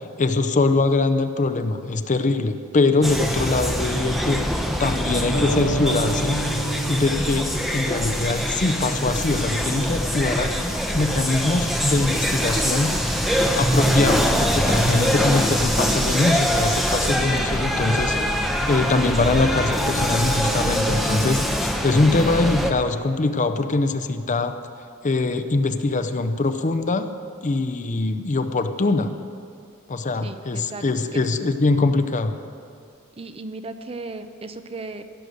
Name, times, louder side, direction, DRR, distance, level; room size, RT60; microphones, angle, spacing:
voice 1, 0.2-6.4 6.9-10.5 10.9-12.9 13.5-24.5 25.0-27.1 27.4-29.1 29.9-32.4, left 3 dB, 35° left, 9 dB, 0.6 m, -23 dB
sound 1, 3.0-22.7, equal, ahead, 0.8 m, -23 dB
sound 2, 5.3-9.3, right 2 dB, 80° left, 1.4 m, -31 dB
voice 2, 17.0-17.8 30.2-30.9 31.1-31.2 33.2-35.0, right 3 dB, 25° right, 9 dB, 0.5 m, -36 dB
16.5 x 6.6 x 7.8 m, 2.4 s
head